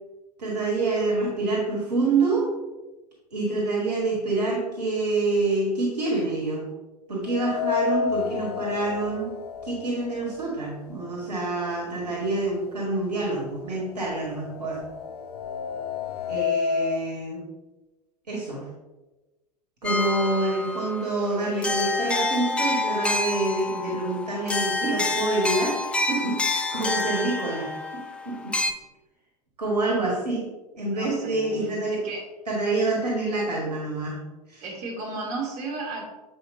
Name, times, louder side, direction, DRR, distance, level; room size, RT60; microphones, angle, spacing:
voice 1, 0.4-2.5 3.3-6.7 7.1-9.4 9.6-14.9 16.3-17.5 18.3-18.7 19.8-28.6 29.6-30.4 30.7-32.0 32.5-34.6, right 2 dB, 75° right, -3 dB, 1.6 m, -27 dB
sound 1, 7.3-11.3 11.7-11.8 12.8-12.9 13.2-17.1, left 6 dB, 70° left, 0.5 m, -30 dB
sound 2, 19.8-28.7, left 2 dB, 5° left, 0.3 m, -28 dB
voice 2, 30.9-32.3 34.6-36.0, right 3 dB, 45° right, -3 dB, 2.2 m, -34 dB
7.8 x 4.8 x 2.6 m, 1.1 s
figure-of-eight pair, 90°, 21 cm